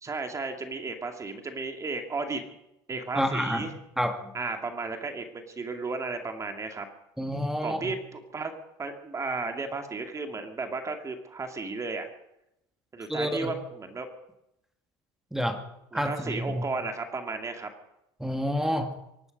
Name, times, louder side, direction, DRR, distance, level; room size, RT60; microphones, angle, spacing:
voice 1, 0.0-2.4 2.9-3.7 4.3-6.9 7.6-8.5 8.8-12.1 12.9-14.1 15.9-17.7, right 3 dB, 25° right, 5 dB, 2.2 m, -34 dB
voice 2, 3.2-4.2 7.2-7.8 13.1-13.5 15.3-15.6 15.9-16.6 18.2-18.9, equal, 5° right, 6 dB, 2.0 m, -29 dB
24.0 x 11.5 x 5.3 m, 0.84 s
supercardioid pair, 100°, 13 cm